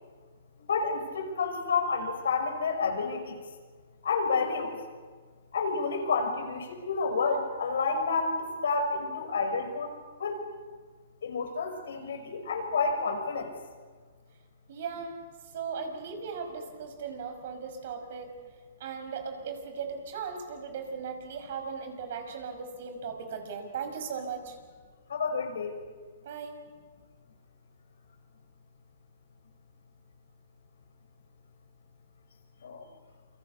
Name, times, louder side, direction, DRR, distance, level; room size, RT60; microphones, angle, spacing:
voice 1, 0.6-3.4 4.0-4.8 5.5-10.4 11.2-13.5 25.1-25.7 32.6-32.8, left 4 dB, 85° left, 4 dB, 6.0 m, -30 dB
voice 2, 14.7-15.1 15.5-18.3 18.8-24.6 26.2-26.5, right 6 dB, 60° right, 6 dB, 6.0 m, -37 dB
28.5 x 25.0 x 7.0 m, 1.5 s
hypercardioid pair, 145°, 0 cm